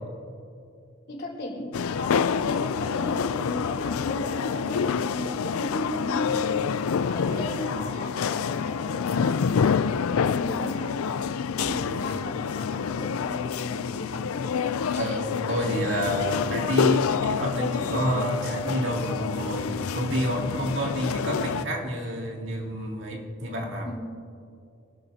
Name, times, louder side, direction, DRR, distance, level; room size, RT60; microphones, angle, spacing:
voice 1, 1.1-6.7 7.0-10.9 11.6-14.7 19.0-19.2 20.5-20.7 21.0-21.3 23.8-24.1, left 1 dB, 50° left, -4 dB, 3.9 m, -35 dB
sound 1, 1.7-21.6, left 6 dB, 90° left, 0.4 m, -27 dB
voice 2, 7.3-7.6 11.8-12.0 14.9-23.9, equal, 60° right, -1 dB, 2.5 m, -29 dB
26.5 x 13.0 x 2.8 m, 2.5 s
head